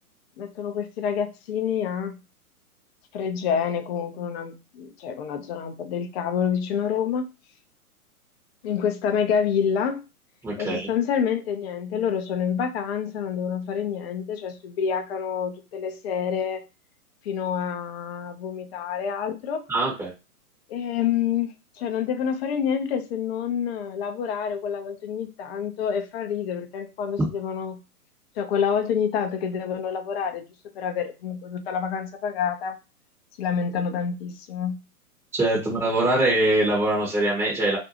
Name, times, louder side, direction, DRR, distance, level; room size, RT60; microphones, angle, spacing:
voice 1, 0.4-2.2 3.1-7.3 8.6-10.0 10.6-16.6 17.2-19.6 20.7-27.8 28.4-30.4 30.7-32.8 33.4-34.8, left 7 dB, 45° left, 6 dB, 0.6 m, -27 dB
voice 2, 10.4-10.9 19.7-20.1 35.4-37.8, right 1 dB, 5° right, -6 dB, 0.8 m, -23 dB
2.5 x 2.2 x 2.8 m, 0.28 s
hypercardioid pair, 125°, 45 cm